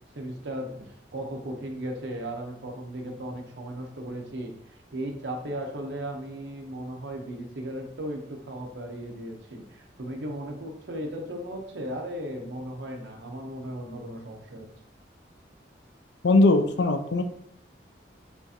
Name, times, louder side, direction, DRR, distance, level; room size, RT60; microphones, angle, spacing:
voice 1, 0.1-4.5 4.9-14.7, right 1 dB, 75° right, 2 dB, 0.7 m, -36 dB
voice 2, 16.2-17.2, left 2 dB, 70° left, 8 dB, 0.5 m, -20 dB
6.7 x 2.5 x 2.7 m, 0.72 s
head